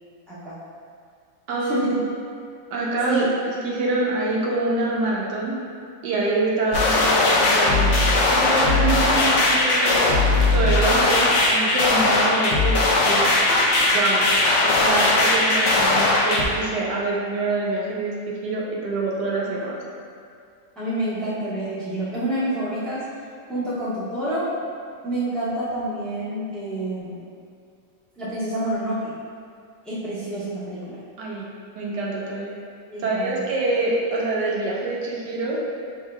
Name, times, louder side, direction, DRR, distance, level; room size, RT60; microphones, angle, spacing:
voice 1, 0.3-0.6 1.6-2.0 3.0-3.3 10.9-11.3 20.8-23.0 23.5-24.5 25.0-27.3 28.2-29.1 29.8-31.0 32.9-33.4, right 1 dB, ahead, -11 dB, 0.8 m, -28 dB
voice 2, 1.5-1.9 2.7-5.5 6.0-7.9 8.3-10.1 10.5-13.3 13.9-14.3 14.6-18.1 18.4-19.7 31.2-31.4 31.8-32.5 33.0-35.6, right 2 dB, 90° right, -4 dB, 1.4 m, -25 dB
sound 1, 6.7-16.4, left 2 dB, 65° left, 0.8 m, -19 dB
5.6 x 3.7 x 2.3 m, 2.4 s
omnidirectional pair, 1.8 m